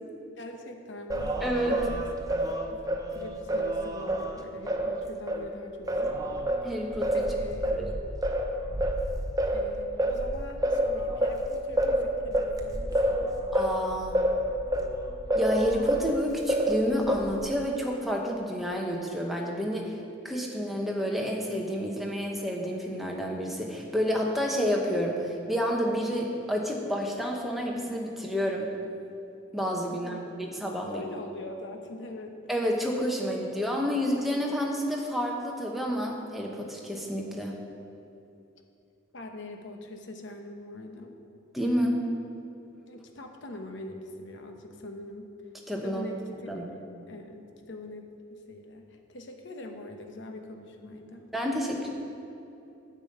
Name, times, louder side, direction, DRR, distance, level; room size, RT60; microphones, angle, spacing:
voice 1, 0.4-2.1 2.7-2.8 3.1-6.4 7.1-7.8 9.5-13.4 29.9-30.2 30.9-32.4 39.1-41.2 42.9-45.3 45.8-51.2, left 1 dB, 65° left, 4 dB, 0.9 m, -42 dB
Singing, 1.1-5.5 5.9-16.1 16.5-17.5, right 1 dB, 20° right, 0.6 m, -28 dB
voice 2, 1.4-1.8 6.6-7.3 7.7-7.9 13.5-14.2 15.3-20.0 20.2-28.7 29.5-31.0 32.5-37.6 41.5-42.0 45.7-46.0 46.5-46.6 51.3-51.9, equal, ahead, -1 dB, 1.0 m, -29 dB
9.0 x 5.4 x 7.8 m, 2.7 s
head